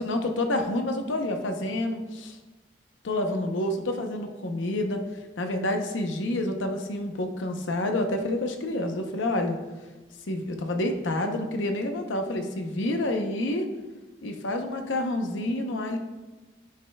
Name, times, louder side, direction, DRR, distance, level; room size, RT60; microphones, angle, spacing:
voice 1, 0.0-2.4 3.0-5.0 5.4-9.6 10.3-13.7 14.2-16.0, left 1 dB, 85° left, 5 dB, 0.8 m, -28 dB
10.0 x 5.3 x 2.3 m, 1.2 s
head